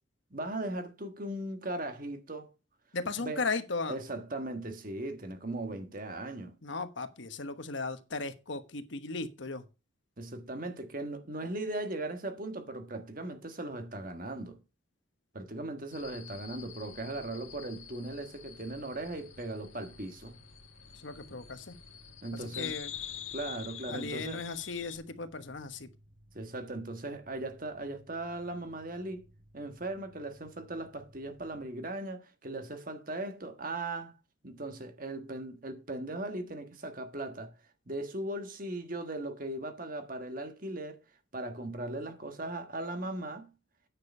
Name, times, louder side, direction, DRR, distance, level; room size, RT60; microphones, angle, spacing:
voice 1, 0.3-2.5 3.2-3.5 3.9-6.5 10.2-14.6 15.3-20.4 21.3-21.4 22.2-22.8 23.3-24.4 26.3-29.2 29.5-34.1 34.4-37.5 37.9-41.0 41.3-43.5, right 2 dB, 40° right, 1.4 m, -38 dB
voice 2, 2.9-4.0 6.6-9.6 21.0-21.8 22.3-22.9 23.9-25.9, left 3 dB, 65° left, 1.1 m, -36 dB
sound 1, 15.9-25.0, left 10 dB, 85° left, 1.7 m, -46 dB
Mechanical fan, 18.9-31.7, equal, 90° right, 5.5 m, -60 dB
9.5 x 6.6 x 5.5 m
head